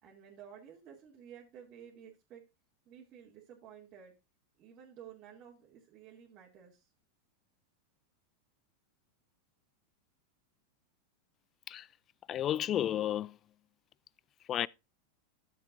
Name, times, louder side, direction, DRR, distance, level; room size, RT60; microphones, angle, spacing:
voice 1, 0.0-2.4 2.9-4.1 4.6-6.9, right 8 dB, 40° right, 2.4 m, -53 dB
voice 2, 12.3-13.3 14.5-14.7, left 11 dB, 30° left, 0.4 m, -32 dB
12.5 x 7.4 x 2.6 m
supercardioid pair, 130°, 0 cm